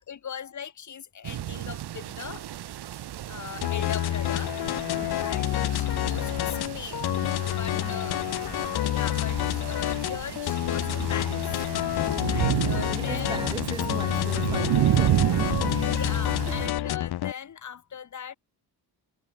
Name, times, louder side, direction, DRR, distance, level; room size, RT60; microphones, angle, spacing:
voice 1, 0.0-2.4 3.3-4.6 5.2-7.1 7.5-8.2 8.6-11.7 12.2-13.4 15.8-18.4, left 8 dB, 45° left, 3.1 m, -39 dB
sound 1, 1.2-16.7, right 12 dB, 75° right, 2.0 m, -31 dB
sound 2, 3.6-17.3, left 13 dB, 70° left, 1.0 m, -28 dB
voice 2, 5.0-5.3 7.7-8.1 12.1-12.4 12.9-15.9, right 2 dB, 10° right, 3.1 m, -40 dB
wide cardioid pair, 165°, 40 cm